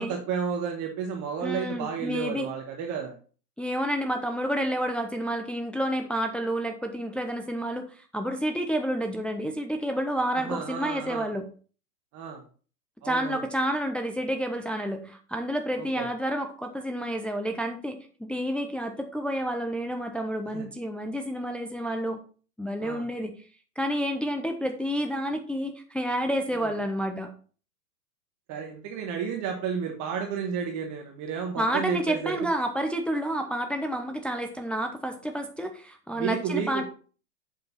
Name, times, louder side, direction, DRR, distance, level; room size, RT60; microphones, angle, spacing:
voice 1, 0.0-3.2 10.3-11.3 12.1-12.4 13.0-13.4 15.8-16.1 20.5-20.6 22.8-23.1 26.5-26.7 28.5-32.4 36.1-36.8, right 7 dB, 35° right, 3 dB, 1.5 m, -32 dB
voice 2, 1.4-2.5 3.6-11.5 13.0-22.2 22.6-23.3 23.8-27.3 31.6-36.8, equal, ahead, 4 dB, 0.7 m, -29 dB
8.0 x 6.7 x 4.1 m, 0.39 s
hypercardioid pair, 115°, 49 cm